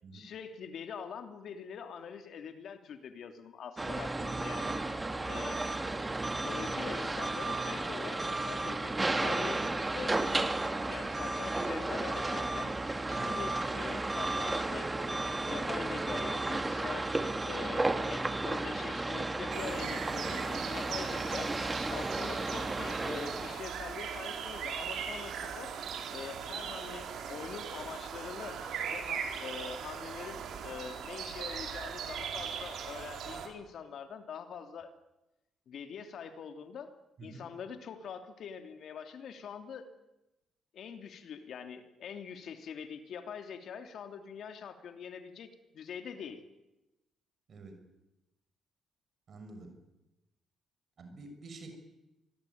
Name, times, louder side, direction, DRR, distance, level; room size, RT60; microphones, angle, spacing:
voice 1, 0.1-4.8 5.3-5.7 6.4-8.9 9.2-9.6 9.9-10.5 10.9-12.7 13.1-17.1 17.4-21.5 21.9-25.7 26.1-28.6 28.9-34.9 35.7-36.9 37.2-39.9 40.7-46.4, left 7 dB, 65° left, 7 dB, 2.9 m, -44 dB
sound 1, 3.8-23.6, right 2 dB, 20° right, 2.3 m, -33 dB
sound 2, 19.5-33.5, right 7 dB, 75° right, 4.4 m, -39 dB
voice 2, 37.2-37.5 47.5-47.8 49.3-49.7 51.0-51.8, right 3 dB, 50° right, 6 dB, 6.2 m, -48 dB
25.0 x 21.5 x 9.4 m, 0.99 s
cardioid pair, 90°, 0 cm